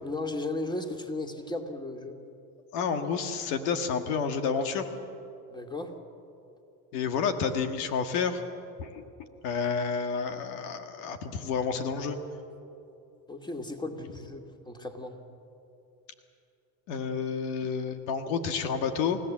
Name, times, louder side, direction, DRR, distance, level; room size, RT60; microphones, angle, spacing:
voice 1, 0.0-2.2 5.5-5.9 13.3-15.2, left 2 dB, 10° left, 4 dB, 2.4 m, -35 dB
voice 2, 2.7-4.8 6.9-8.4 8.8-9.0 9.4-12.2 16.9-19.2, left 6 dB, 75° left, 7 dB, 1.8 m, -30 dB
29.0 x 16.0 x 7.5 m, 2.7 s
hypercardioid pair, 85°, 47 cm